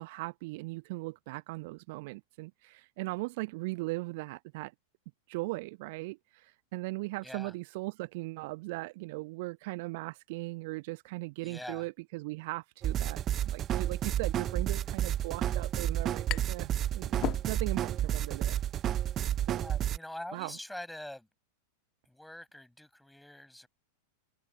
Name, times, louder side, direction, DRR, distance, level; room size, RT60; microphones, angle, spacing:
voice 1, 0.0-4.7 5.3-18.6 19.5-19.6 20.3-20.6, right 23 dB, 50° right, 1.1 m, -39 dB
voice 2, 7.2-7.5 11.4-11.9 19.5-21.3 22.0-23.7, left 1 dB, 5° left, 6.5 m, -44 dB
sound 1, 12.8-20.0, right 11 dB, 30° right, 0.7 m, -31 dB
sound 2, 16.3-16.7 17.0-17.9, left 17 dB, 35° left, 2.2 m, -38 dB
figure-of-eight pair, 90°, 0 cm